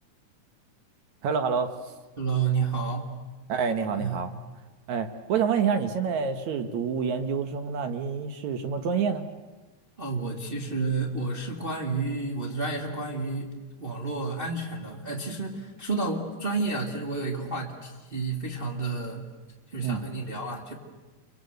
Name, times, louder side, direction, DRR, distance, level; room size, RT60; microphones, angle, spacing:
voice 1, 1.2-1.7 3.5-4.3 4.9-9.2 19.8-20.0, right 6 dB, 70° right, 8 dB, 2.6 m, -27 dB
voice 2, 2.2-3.1 3.9-4.2 10.0-13.5 13.8-19.3 19.7-20.7, right 4 dB, 20° right, 0 dB, 2.0 m, -30 dB
28.0 x 24.0 x 8.0 m, 1.2 s
omnidirectional pair, 3.4 m